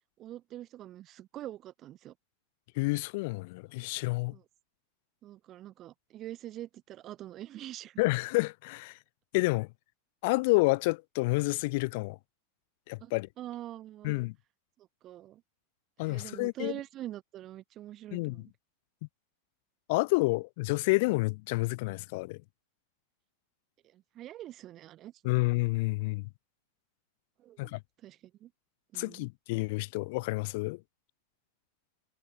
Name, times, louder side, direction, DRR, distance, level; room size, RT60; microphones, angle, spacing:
voice 1, 0.2-2.1 4.3-4.4 5.2-8.0 13.0-13.1 13.4-14.2 14.8-15.4 16.0-18.5 23.9-25.3 27.4-28.5 28.9-29.3, right 13 dB, 35° right, 3.7 m, -45 dB
voice 2, 2.7-4.3 8.0-9.0 9.3-9.7 10.2-12.2 12.9-13.3 14.0-14.3 16.0-16.7 18.1-18.4 19.9-22.4 25.2-26.3 27.6-27.8 28.9-30.8, left 25 dB, 50° left, 1.7 m, -29 dB
figure-of-eight pair, 90°, 0 cm